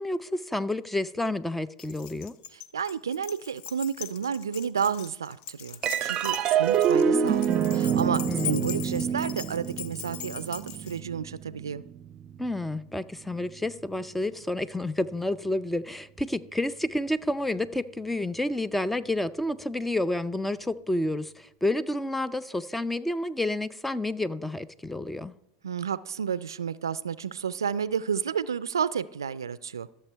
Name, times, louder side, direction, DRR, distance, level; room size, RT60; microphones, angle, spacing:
voice 1, 0.0-2.3 8.3-9.1 12.4-25.3, left 1 dB, 5° left, 17 dB, 0.5 m, -30 dB
Keys jangling, 1.8-11.0, left 11 dB, 55° left, 0.6 m, -40 dB
voice 2, 2.5-11.8 25.6-29.9, right 7 dB, 90° right, 18 dB, 0.4 m, -31 dB
sound 1, 5.8-12.5, right 8 dB, 40° right, 0.6 m, -26 dB
13.5 x 6.8 x 4.5 m, 0.83 s
hypercardioid pair, 95°, 2 cm